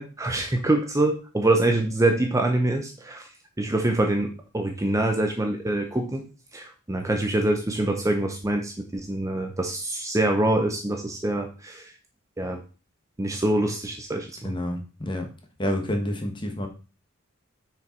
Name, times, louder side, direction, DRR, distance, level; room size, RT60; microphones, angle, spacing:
voice 1, 0.0-3.3 3.6-6.3 6.5-11.9 12.4-12.6 13.2-14.5, right 2 dB, 15° right, 4 dB, 0.7 m, -25 dB
voice 2, 14.4-15.3 15.6-16.7, left 1 dB, 25° left, 4 dB, 1.3 m, -28 dB
6.5 x 5.0 x 4.4 m, 0.34 s
head